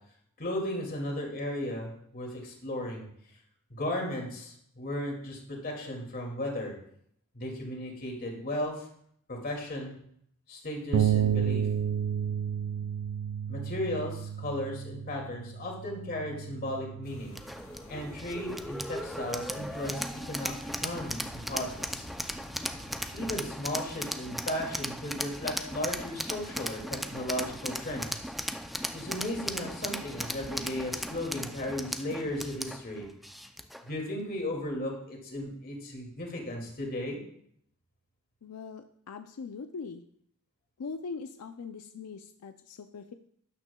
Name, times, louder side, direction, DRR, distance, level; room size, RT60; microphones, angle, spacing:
voice 1, 0.4-3.1 3.7-6.7 7.3-8.9 9.3-9.9 10.5-11.7 13.5-17.4 17.9-22.1 23.1-28.3 28.9-33.1 33.8-37.2, left 1 dB, 45° left, 0 dB, 2.4 m, -35 dB
sound 1, 10.9-17.2, right 9 dB, 90° right, 0.4 m, -31 dB
sound 2, 17.0-23.4, left 1 dB, 65° left, 1.9 m, -49 dB
sound 3, 17.4-33.9, equal, ahead, 0.4 m, -37 dB
voice 2, 38.4-40.1 40.8-43.1, left 5 dB, 85° left, 8 dB, 0.5 m, -41 dB
12.0 x 8.9 x 2.3 m, 0.68 s
head